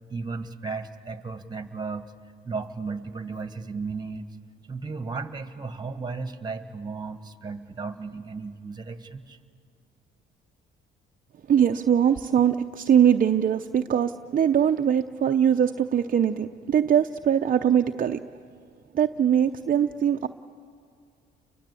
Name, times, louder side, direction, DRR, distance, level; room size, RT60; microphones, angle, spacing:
voice 1, 0.1-2.1 2.4-4.4 4.7-9.4, right 4 dB, 20° right, 10 dB, 1.8 m, -35 dB
voice 2, 11.5-18.3 18.9-20.3, right 9 dB, 45° right, 5 dB, 0.7 m, -22 dB
30.0 x 23.5 x 8.4 m, 2.3 s
cardioid pair, 90°, 20 cm